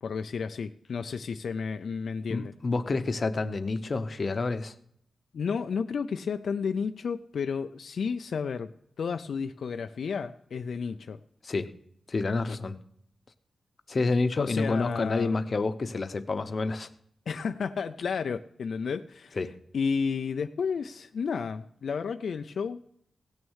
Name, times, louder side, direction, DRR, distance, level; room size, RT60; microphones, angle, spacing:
voice 1, 0.0-2.5 5.3-8.7 9.0-11.2 12.5-12.6 14.4-15.3 17.3-19.4 19.7-22.8, left 5 dB, 70° left, 8 dB, 0.4 m, -32 dB
voice 2, 2.3-4.7 11.4-11.7 12.1-12.8 13.9-16.9 19.4-19.5, left 3 dB, 40° left, 10 dB, 0.7 m, -28 dB
17.0 x 6.4 x 6.3 m, 0.70 s
wide cardioid pair, 140°, 0 cm